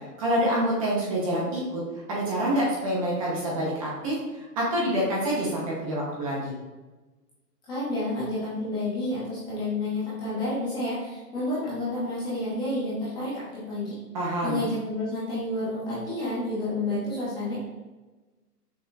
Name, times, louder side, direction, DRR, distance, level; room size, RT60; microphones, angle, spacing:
voice 1, 0.2-1.8 2.1-6.5 14.1-14.6, right 1 dB, 20° right, -4 dB, 0.7 m, -27 dB
voice 2, 7.7-13.9 14.4-17.5, left 1 dB, 10° left, -10 dB, 0.7 m, -30 dB
6.1 x 3.4 x 2.3 m, 1.2 s
hypercardioid pair, 150°, 48 cm